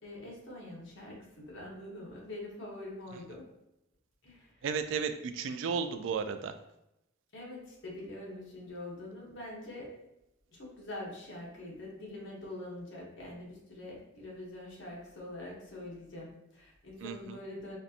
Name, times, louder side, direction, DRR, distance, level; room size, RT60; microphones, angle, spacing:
voice 1, 0.0-3.4 4.2-4.6 7.3-9.9 10.5-17.8, left 1 dB, 65° left, -3 dB, 1.1 m, -44 dB
voice 2, 4.6-6.5 17.0-17.4, right 6 dB, 70° right, 9 dB, 0.3 m, -34 dB
4.4 x 2.5 x 2.7 m, 0.87 s
head